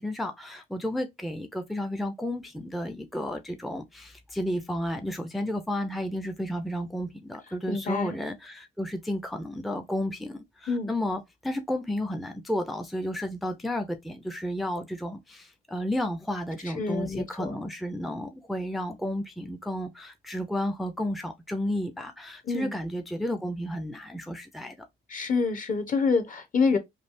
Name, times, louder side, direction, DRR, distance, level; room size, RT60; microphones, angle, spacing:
voice 1, 0.0-24.8, left 1 dB, ahead, 0.5 m, -32 dB
voice 2, 7.7-8.2 10.7-10.9 16.6-17.6 22.4-22.7 25.1-26.8, left 4 dB, 40° left, 1.0 m, -27 dB
3.3 x 2.4 x 2.6 m
cardioid pair, 90°, 20 cm